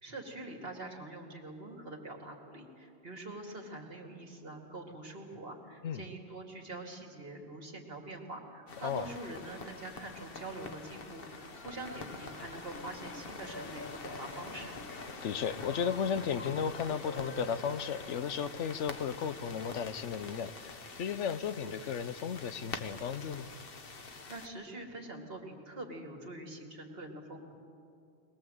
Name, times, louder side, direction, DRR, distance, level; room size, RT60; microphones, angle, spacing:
voice 1, 0.0-14.8 24.0-27.5, right 2 dB, 55° right, 1 dB, 2.7 m, -45 dB
sound 1, 8.7-24.5, left 4 dB, 55° left, 1.3 m, -46 dB
sound 2, 11.5-18.1, left 2 dB, 15° left, 0.4 m, -50 dB
voice 2, 15.2-23.5, left 7 dB, 85° left, 12 dB, 1.1 m, -35 dB
21.5 x 20.5 x 7.9 m, 2.5 s
omnidirectional pair, 1.2 m